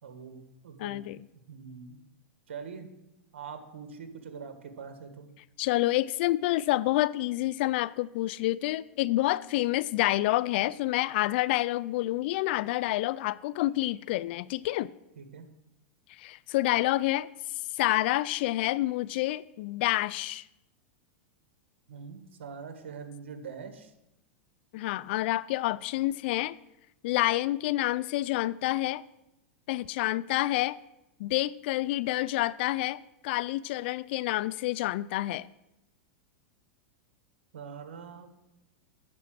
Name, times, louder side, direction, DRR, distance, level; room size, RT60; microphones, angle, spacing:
voice 1, 0.0-1.0 1.5-2.0 2.5-2.9 3.3-5.3 15.2-15.5 21.9-23.9 37.5-38.3, right 6 dB, 85° right, 1.6 m, -43 dB
voice 2, 0.8-1.2 5.6-14.9 16.1-20.5 24.7-26.6 27.0-29.0 29.7-30.8 31.2-35.5, left 17 dB, 60° left, 0.3 m, -28 dB
9.7 x 7.0 x 7.6 m
hypercardioid pair, 125°, 6 cm